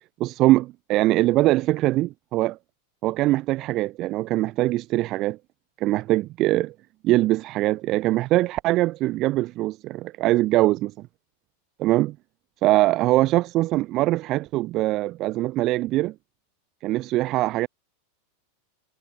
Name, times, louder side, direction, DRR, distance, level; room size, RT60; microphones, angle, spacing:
voice 1, 0.2-2.6 3.0-5.4 5.8-6.7 7.0-11.1 11.8-12.1 12.6-16.1 16.8-17.7, right 17 dB, 45° right, 1.5 m, -22 dB
hypercardioid pair, 115°, 0 cm